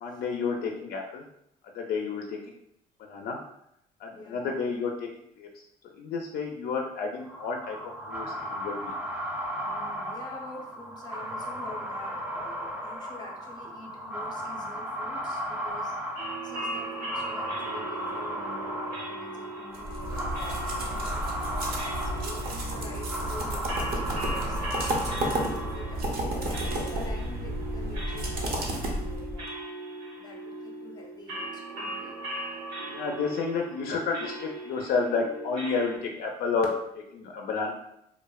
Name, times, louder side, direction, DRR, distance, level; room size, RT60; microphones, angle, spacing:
voice 1, 0.0-1.2 1.7-2.5 3.0-3.4 4.0-5.1 5.4-5.5 5.8-7.8 8.1-9.0 32.9-36.7 37.1-37.7, left 4 dB, 65° left, 1 dB, 0.4 m, -31 dB
voice 2, 4.1-4.6 9.6-16.0 16.4-21.4 22.0-29.6 30.2-32.2, left 1 dB, 25° left, 0 dB, 0.6 m, -46 dB
sound 1, 7.2-26.1, equal, 10° right, 0.3 m, -36 dB
sound 2, 16.2-36.0, right 1 dB, 85° right, 0.9 m, -38 dB
sound 3, 19.7-29.5, right 1 dB, 60° right, 0.7 m, -32 dB
3.0 x 2.0 x 2.2 m, 0.76 s
cardioid pair, 110°, 17 cm